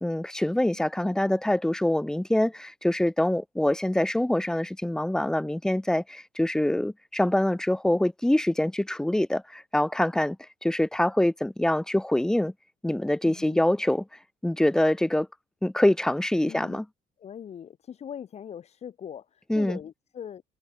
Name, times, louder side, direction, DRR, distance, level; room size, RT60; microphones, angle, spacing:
voice 1, 0.0-10.4 10.6-12.5 12.8-14.0 14.4-15.3 15.6-16.8 19.5-19.8, left 1 dB, 5° left, 0.4 m, -25 dB
voice 2, 13.2-13.6 16.4-16.8 17.2-20.4, left 8 dB, 40° left, 0.8 m, -41 dB
cardioid pair, 110°, 17 cm